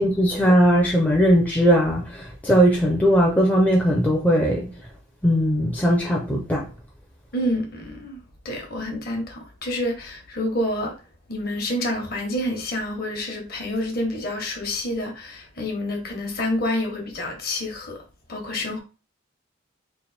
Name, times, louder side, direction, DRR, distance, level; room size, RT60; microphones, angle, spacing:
voice 1, 0.0-4.7 5.2-6.7, equal, 5° left, 0.5 m, -19 dB
voice 2, 7.3-8.2 8.4-11.0 11.3-18.0 18.3-18.8, left 1 dB, 45° left, 1.1 m, -28 dB
3.3 x 2.6 x 4.1 m
head